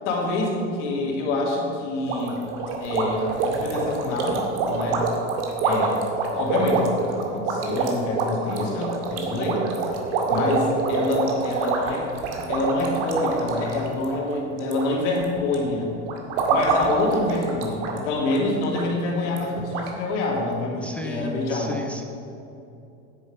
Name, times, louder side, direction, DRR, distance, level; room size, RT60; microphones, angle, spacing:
voice 1, 0.0-2.5 2.8-5.1 5.6-6.0 6.3-9.6 10.3-12.1 12.5-15.9 16.5-21.8, left 2 dB, 85° left, -1 dB, 2.9 m, -26 dB
sound 1, 2.1-14.8 15.1-15.5 16.1-18.0 18.3-18.4 18.7-18.8 19.4-19.5 19.7-19.9, right 4 dB, 75° right, 2.1 m, -26 dB
voice 2, 20.8-22.0, left 1 dB, 5° left, 2 dB, 1.1 m, -35 dB
9.8 x 8.5 x 7.0 m, 2.8 s
supercardioid pair, 105°, 35 cm